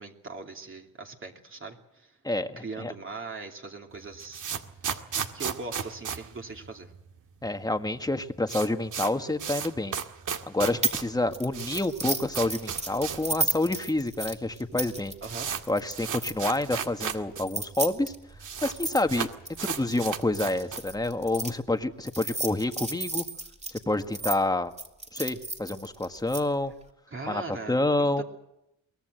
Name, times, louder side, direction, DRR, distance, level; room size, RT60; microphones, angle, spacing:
voice 1, 0.0-2.2 2.6-4.5 4.8-5.0 5.3-6.9 11.1-11.3 15.2-15.5 27.1-28.2, right 3 dB, 35° right, 2 dB, 2.8 m, -40 dB
voice 2, 2.2-2.9 7.4-9.9 10.5-15.1 15.7-18.1 18.6-19.3 19.6-23.2 23.7-24.7 25.1-26.7 27.3-28.2, left 2 dB, 10° left, 8 dB, 1.7 m, -28 dB
sound 1, 3.9-7.2 7.4-7.5 7.8-7.9 8.2-13.3 13.6-13.7 14.4-14.5 14.8-17.5 17.7-17.8 18.0-18.8 19.1-21.0, right 7 dB, 55° right, 2.0 m, -34 dB
sound 2, 10.8-11.0 11.3-16.6 17.4-21.5 22.1-24.4 24.8-26.4, right 3 dB, 20° right, 2.9 m, -33 dB
23.0 x 18.0 x 8.0 m, 0.85 s
cardioid pair, 80°, 37 cm